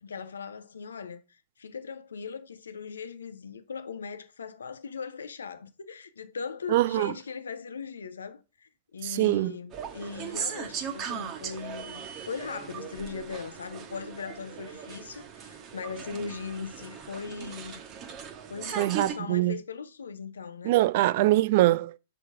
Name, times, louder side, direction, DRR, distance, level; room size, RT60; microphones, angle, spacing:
voice 1, 0.0-17.8 18.5-20.8, left 5 dB, 75° left, 0.7 m, -39 dB
voice 2, 6.7-7.1 9.0-9.6 18.8-19.6 20.6-22.0, right 16 dB, 50° right, 0.3 m, -23 dB
sound 1, 9.7-19.1, right 7 dB, 35° right, 1.2 m, -38 dB
5.4 x 3.9 x 5.0 m
figure-of-eight pair, 105°, 0 cm